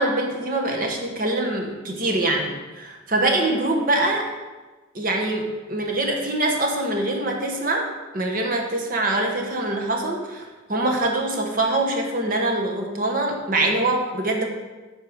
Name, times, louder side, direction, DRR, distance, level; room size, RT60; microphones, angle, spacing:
voice 1, 0.0-4.3 4.9-7.9 8.1-14.4, right 2 dB, 45° right, 1 dB, 1.1 m, -24 dB
8.3 x 4.6 x 6.4 m, 1.2 s
head